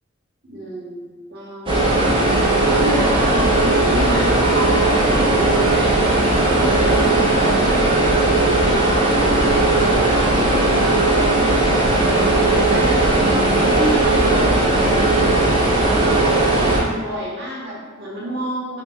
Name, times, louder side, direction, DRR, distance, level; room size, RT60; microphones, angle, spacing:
voice 1, 0.5-2.1 2.6-6.0 6.2-7.9 8.5-13.2 13.5-16.2 16.6-18.8, right 1 dB, 55° right, -5 dB, 1.1 m, -29 dB
sound 1, 1.7-16.8, right 2 dB, 25° right, 0.6 m, -17 dB
5.8 x 2.4 x 2.6 m, 1.4 s
head